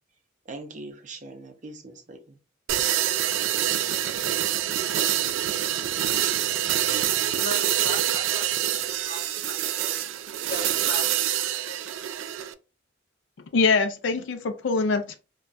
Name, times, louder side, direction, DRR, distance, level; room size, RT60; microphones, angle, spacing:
voice 1, 0.5-2.2, right 2 dB, 40° right, 0.5 m, -41 dB
sound 1, 2.7-12.5, right 11 dB, 90° right, 0.3 m, -26 dB
voice 2, 6.9-10.0 10.4-11.8, left 1 dB, 50° left, 1.1 m, -39 dB
voice 3, 13.5-15.1, left 4 dB, 70° left, 0.4 m, -23 dB
2.3 x 2.2 x 3.9 m
head